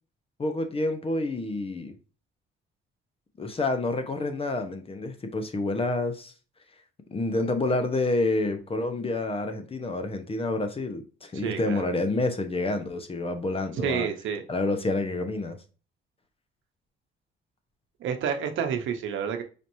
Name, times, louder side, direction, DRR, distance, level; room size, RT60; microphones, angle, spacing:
voice 1, 0.4-1.9 3.4-6.3 7.1-14.1 14.5-15.6, left 2 dB, 30° left, 0.8 m, -28 dB
voice 2, 11.3-11.9 13.8-14.4 18.0-19.4, right 7 dB, 75° right, 0.8 m, -29 dB
5.1 x 2.9 x 2.7 m
cardioid pair, 90°, 20 cm